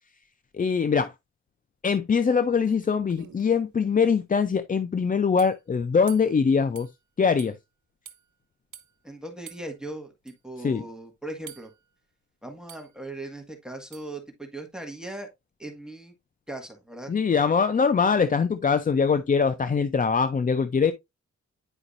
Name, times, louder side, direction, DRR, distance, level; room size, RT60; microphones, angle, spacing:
voice 1, 0.5-1.1 1.8-6.9 7.2-7.6 10.6-10.8 17.1-20.9, left 5 dB, 30° left, 0.5 m, -23 dB
sound 1, 2.2-2.3 2.6-3.6 5.4-5.6 6.1-6.4 6.8-6.9 7.4-7.5 8.1-8.2 8.7-8.9 9.5-9.7 10.3-10.4 11.5-11.8 12.7-12.9 13.9-14.1, right 8 dB, 75° right, 1.2 m, -46 dB
voice 2, 9.0-11.7 12.4-15.3 15.6-16.1 16.5-17.1, right 2 dB, ahead, 1.6 m, -39 dB
9.9 x 4.9 x 2.5 m
wide cardioid pair, 125°, 29 cm